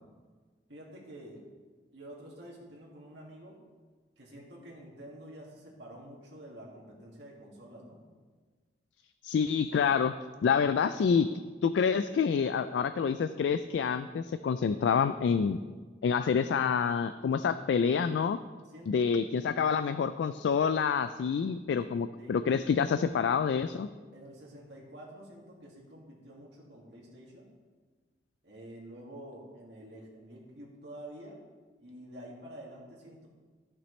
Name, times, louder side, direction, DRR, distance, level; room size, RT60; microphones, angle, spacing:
voice 1, 0.7-1.4 1.9-3.5 4.2-8.0 18.7-19.5 22.2-22.7 24.1-27.5 28.4-31.4 31.8-33.3, right 1 dB, 80° right, -4 dB, 2.0 m, -48 dB
voice 2, 9.2-10.1 10.4-11.3 11.6-15.6 16.0-18.4 18.9-23.9, left 6 dB, 80° left, 11 dB, 0.3 m, -27 dB
14.5 x 6.0 x 3.2 m, 1.4 s
head